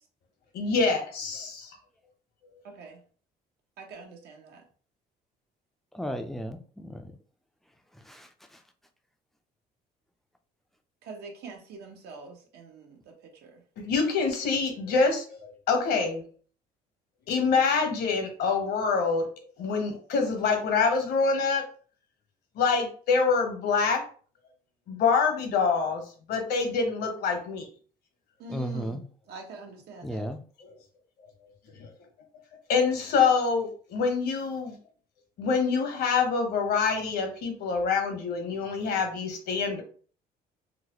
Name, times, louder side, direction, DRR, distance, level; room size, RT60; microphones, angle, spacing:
voice 1, 0.5-1.7 13.8-16.2 17.3-19.3 19.6-21.6 22.6-24.0 24.9-26.0 26.3-27.6 30.6-30.7 31.8-31.9 32.7-34.7 35.4-39.8, left 5 dB, 70° left, 3 dB, 1.0 m, -26 dB
voice 2, 2.6-3.0 3.8-4.6 11.0-13.6 28.4-30.3, right 2 dB, 75° right, 2 dB, 1.0 m, -44 dB
voice 3, 5.9-7.0 8.1-8.3 28.5-29.0 30.0-30.4, equal, ahead, 6 dB, 0.4 m, -34 dB
3.9 x 2.1 x 2.9 m, 0.43 s
cardioid pair, 110°, 17 cm